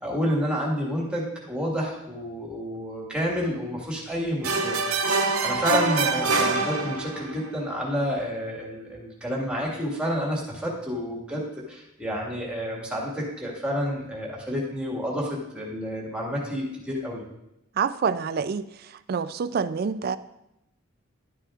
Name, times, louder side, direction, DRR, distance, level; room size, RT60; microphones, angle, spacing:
voice 1, 0.0-5.1 5.4-17.3, equal, 5° right, -3 dB, 1.7 m, -29 dB
sound 1, 4.4-7.4, right 3 dB, 85° right, 0.9 m, -25 dB
voice 2, 17.8-18.6 19.1-20.2, right 6 dB, 45° right, 14 dB, 0.3 m, -26 dB
11.0 x 9.1 x 2.4 m, 0.88 s
head